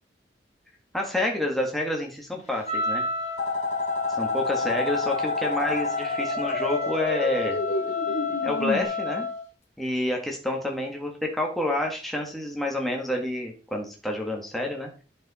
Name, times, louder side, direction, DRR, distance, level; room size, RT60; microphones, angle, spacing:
voice 1, 0.9-3.0 4.2-7.6 8.4-9.3 9.8-14.9, left 1 dB, ahead, 0 dB, 1.7 m, -28 dB
Wind instrument woodwind instrument, 2.6-9.4, left 4 dB, 40° left, 2.0 m, -31 dB
sound 1, 3.4-8.8, left 2 dB, 60° left, 1.4 m, -29 dB
10.5 x 5.3 x 4.2 m, 0.36 s
head